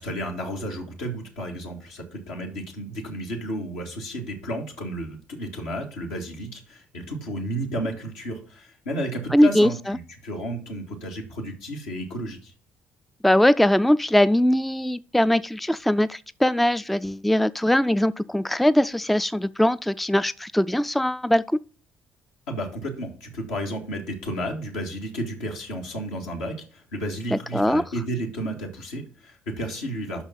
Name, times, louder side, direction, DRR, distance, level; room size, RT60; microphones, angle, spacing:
voice 1, 0.0-12.5 22.5-30.2, equal, 75° left, 1.9 m, -32 dB
voice 2, 9.3-10.0 13.2-21.4 27.3-27.8, left 1 dB, ahead, 0.3 m, -21 dB
5.8 x 5.5 x 5.9 m
hypercardioid pair, 50°, 6 cm